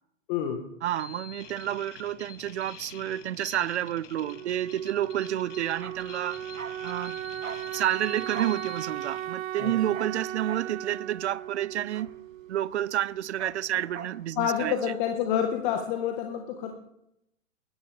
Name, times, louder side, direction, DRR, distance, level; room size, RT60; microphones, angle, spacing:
voice 1, 0.3-0.6 9.6-9.7 14.4-16.7, left 9 dB, 40° left, 1.5 m, -28 dB
voice 2, 0.8-6.4 6.8-7.2 7.7-12.1 12.5-14.8, right 12 dB, 60° right, 0.5 m, -30 dB
sound 1, 0.9-9.3, left 7 dB, 65° left, 1.6 m, -47 dB
Wind instrument woodwind instrument, 4.2-12.9, right 13 dB, 25° right, 0.7 m, -37 dB
Bark, 5.7-12.7 13.0-14.9 15.2-15.3, right 6 dB, 85° right, 1.1 m, -43 dB
20.5 x 11.5 x 3.5 m
figure-of-eight pair, 110°, 39 cm